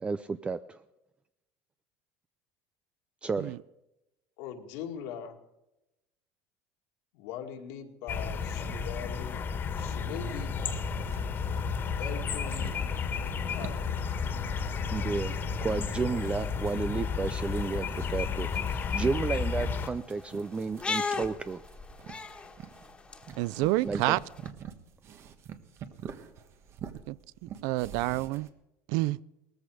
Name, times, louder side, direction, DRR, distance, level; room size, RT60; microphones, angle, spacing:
voice 1, 0.0-0.8 3.2-3.5 14.9-21.6 23.8-24.2, right 4 dB, 15° right, 13 dB, 0.5 m, -32 dB
voice 2, 4.4-5.4 7.1-9.4 9.8-10.6 12.0-12.7 13.5-14.0, left 8 dB, 75° left, 3 dB, 2.3 m, -41 dB
sound 1, 8.1-19.9, left 5 dB, 35° left, 1.8 m, -32 dB
sound 2, 10.7-28.5, right 8 dB, 45° right, 1.4 m, -48 dB
sound 3, 18.8-24.5, left 4 dB, 15° left, 1.7 m, -39 dB
voice 3, 23.4-24.2 27.1-27.2 27.6-28.5 28.9-29.2, right 19 dB, 70° right, 22 dB, 0.5 m, -28 dB
18.5 x 14.5 x 5.0 m, 0.90 s
cardioid pair, 130°, 6 cm